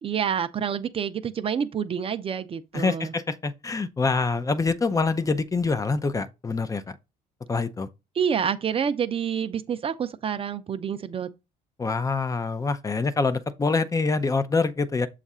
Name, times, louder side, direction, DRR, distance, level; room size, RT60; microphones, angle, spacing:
voice 1, 0.0-3.1 8.2-11.3, right 7 dB, 35° right, 0.6 m, -28 dB
voice 2, 2.7-7.0 7.5-7.9 11.8-15.1, left 4 dB, 20° left, 0.5 m, -25 dB
7.0 x 2.4 x 5.4 m
cardioid pair, 110°, 17 cm